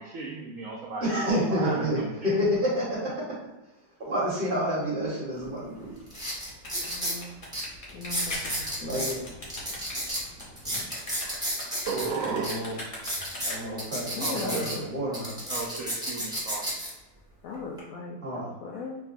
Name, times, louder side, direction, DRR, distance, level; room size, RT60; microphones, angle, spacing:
voice 1, 0.0-2.4 11.9-12.5 14.2-14.7 15.5-16.7, right 4 dB, 80° right, -3 dB, 0.7 m, -34 dB
voice 2, 1.0-3.4 4.0-5.9 8.8-9.2 12.2-12.8 13.4-15.3 18.2-18.5, equal, 35° right, -7 dB, 1.1 m, -29 dB
sound 1, 5.4-5.5 6.1-7.2 7.5-7.6 8.0-9.1 9.5-12.1 12.4-12.5 12.9-14.7 15.1-16.9 17.5-17.8, equal, 5° right, 0.8 m, -32 dB
sound 2, 6.0-13.9, left 1 dB, 40° left, 0.8 m, -40 dB
voice 3, 6.9-7.4 7.9-9.2 14.1-14.9 17.4-19.0, left 3 dB, 80° left, -1 dB, 0.7 m, -38 dB
4.6 x 2.3 x 2.5 m, 1.1 s
omnidirectional pair, 2.0 m